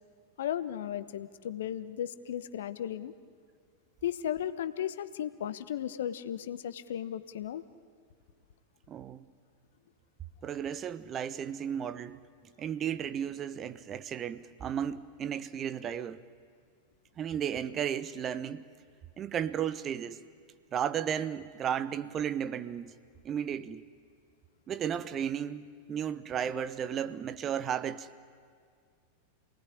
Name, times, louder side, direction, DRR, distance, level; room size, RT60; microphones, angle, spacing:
voice 1, 0.4-3.1 4.0-7.6, left 10 dB, 60° left, 1.1 m, -35 dB
voice 2, 8.9-9.3 10.4-12.2 12.6-16.2 17.2-18.7 19.2-20.2 20.7-22.9 23.2-23.8 24.7-28.2, right 9 dB, 25° right, 0.9 m, -34 dB
28.0 x 19.5 x 9.9 m
figure-of-eight pair, 90°, 0 cm